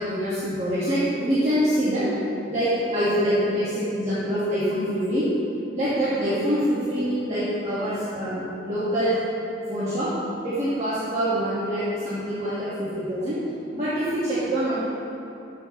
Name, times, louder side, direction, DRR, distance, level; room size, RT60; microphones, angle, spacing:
voice 1, 0.0-2.1 2.5-5.3 5.7-9.2 9.7-10.1 10.4-13.4 13.7-14.8, equal, 35° right, -12 dB, 1.7 m, -25 dB
13.0 x 6.8 x 3.1 m, 2.8 s
head